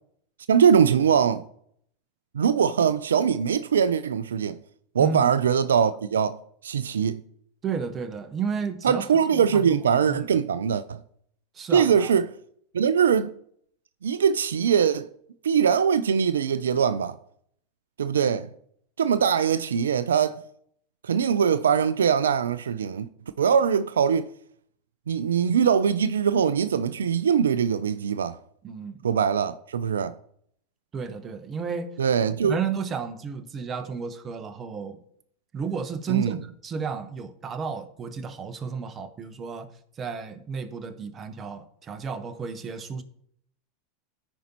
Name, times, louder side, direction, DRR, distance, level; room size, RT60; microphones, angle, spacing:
voice 1, 0.5-1.4 2.3-4.6 4.9-7.2 8.8-11.0 11.7-12.3 12.7-13.3 14.0-15.1 15.4-17.2 18.0-18.5 19.0-20.4 21.0-23.1 23.4-24.3 25.1-28.4 29.0-30.1 32.0-32.6 36.1-36.3, right 7 dB, 85° right, 0.3 m, -22 dB
voice 2, 5.0-5.3 7.6-9.0 9.3-10.4 11.5-12.1 28.6-29.1 30.9-31.9 32.4-35.0 35.5-39.7 40.0-43.0, right 6 dB, 30° right, 1.0 m, -32 dB
14.0 x 5.2 x 2.9 m
hypercardioid pair, 95°, 0 cm